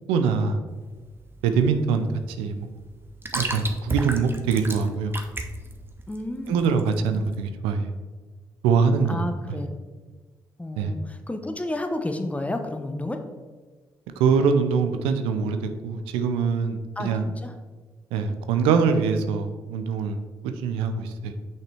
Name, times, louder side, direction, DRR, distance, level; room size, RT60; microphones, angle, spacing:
voice 1, 0.1-0.6 1.4-2.1 2.4-2.7 3.3-5.2 6.5-7.9 8.6-9.2 10.8-10.9 14.2-17.3 18.1-20.2 20.4-21.3, right 5 dB, 85° right, 7 dB, 0.5 m, -23 dB
sound 1, 0.7-7.4, right 2 dB, 25° right, 0.9 m, -34 dB
voice 2, 6.1-6.7 9.1-9.7 10.6-13.2 17.0-17.1 17.4-17.5, left 1 dB, 15° left, 6 dB, 0.9 m, -31 dB
6.2 x 5.6 x 3.4 m, 1.4 s
hypercardioid pair, 50°, 9 cm